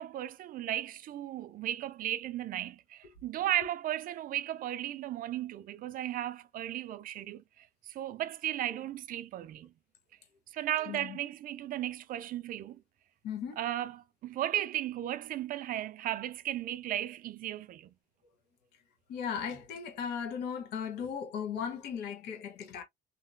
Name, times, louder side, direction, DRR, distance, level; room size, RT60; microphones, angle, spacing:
voice 1, 0.0-9.7 10.5-12.8 13.6-17.9, right 13 dB, 55° right, 0.4 m, -35 dB
voice 2, 10.9-11.2 13.2-13.6 19.1-22.8, left 7 dB, 80° left, 1.0 m, -37 dB
2.9 x 2.6 x 2.5 m
cardioid pair, 110°, 17 cm